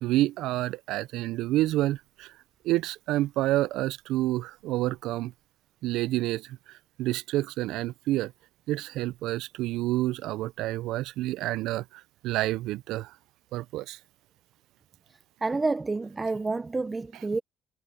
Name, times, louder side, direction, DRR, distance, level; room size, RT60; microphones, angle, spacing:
voice 1, 0.0-2.3 2.6-5.3 5.8-8.3 8.7-13.1 13.5-14.0, right 16 dB, 75° right, 0.3 m, -29 dB
voice 2, 15.1-17.4, right 3 dB, 15° right, 0.6 m, -29 dB
cardioid pair, 130°, 0 cm